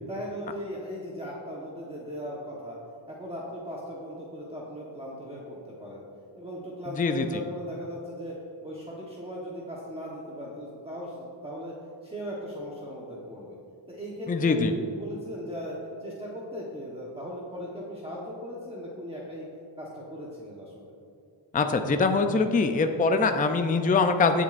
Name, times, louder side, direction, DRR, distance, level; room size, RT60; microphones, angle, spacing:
voice 1, 0.1-2.8 3.1-6.0 6.3-8.3 8.6-11.7 12.0-13.6 13.9-19.5 19.8-20.9, equal, 10° right, -5 dB, 1.2 m, -38 dB
voice 2, 14.3-14.7 21.5-24.4, left 4 dB, 20° left, 6 dB, 0.4 m, -23 dB
18.0 x 7.4 x 2.6 m, 2.5 s
wide cardioid pair, 140°, 48 cm